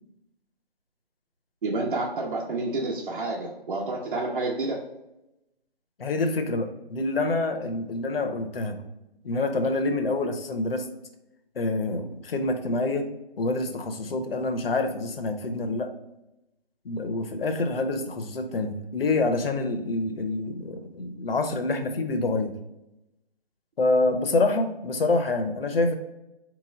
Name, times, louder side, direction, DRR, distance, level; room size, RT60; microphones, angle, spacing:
voice 1, 1.6-4.8, right 2 dB, 55° right, -2 dB, 0.9 m, -29 dB
voice 2, 6.0-8.8 9.2-10.9 11.5-13.1 13.4-15.9 16.8-22.6 23.8-25.9, left 2 dB, 70° left, 6 dB, 0.8 m, -26 dB
4.3 x 3.0 x 3.9 m, 0.91 s
hypercardioid pair, 170°, 30 cm